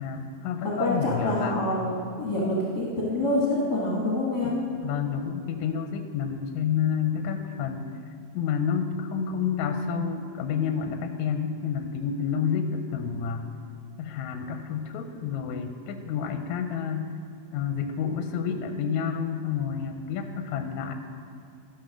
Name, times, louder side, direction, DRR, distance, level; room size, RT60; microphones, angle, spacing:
voice 1, 0.0-1.6 4.4-4.5 4.8-7.9 8.3-13.5 14.0-17.1 17.5-20.9, left 7 dB, 80° left, 6 dB, 1.9 m, -29 dB
voice 2, 0.6-4.6, left 1 dB, 45° left, -5 dB, 1.5 m, -26 dB
13.5 x 5.8 x 6.2 m, 2.4 s
omnidirectional pair, 3.4 m